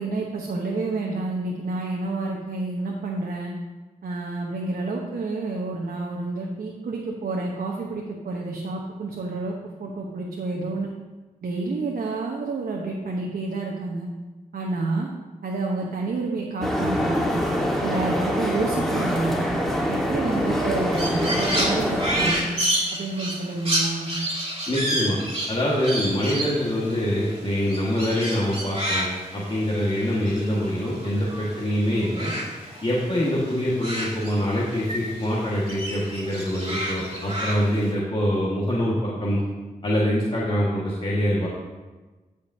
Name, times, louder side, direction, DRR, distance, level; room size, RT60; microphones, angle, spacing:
voice 1, 0.0-3.5 4.0-9.5 9.8-10.9 11.4-14.1 14.5-15.1 15.4-17.4 17.8-19.5 19.9-22.5 22.9-24.1, right 3 dB, 75° right, -1 dB, 1.0 m, -29 dB
sound 1, 16.6-22.3, equal, ahead, 1.6 m, -25 dB
Crow, 20.9-31.6 31.9-34.9 35.2-37.9, right 1 dB, 40° right, 2.3 m, -30 dB
voice 2, 24.7-25.2 25.5-32.3 32.8-39.4 39.8-41.5, equal, 35° left, -6 dB, 1.7 m, -24 dB
15.0 x 5.1 x 2.8 m, 1.2 s
cardioid pair, 50°, 15 cm